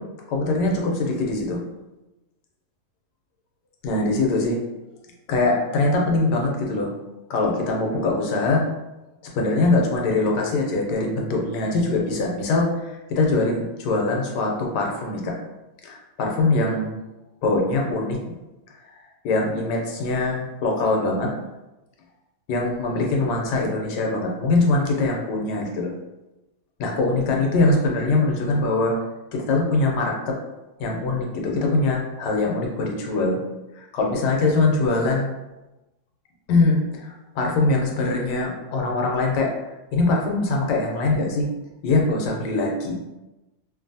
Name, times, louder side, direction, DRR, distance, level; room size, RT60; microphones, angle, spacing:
voice 1, 0.3-1.6 3.8-4.6 5.3-6.9 7.3-8.7 9.3-15.4 15.8-16.9 17.4-18.2 19.2-21.3 22.5-25.9 26.8-29.0 29.3-30.4 30.8-33.4 33.8-35.3 36.5-39.5 39.9-41.5 41.8-43.1, left 2 dB, 80° left, 0 dB, 1.1 m, -22 dB
2.6 x 2.5 x 2.6 m, 1.0 s
omnidirectional pair, 1.8 m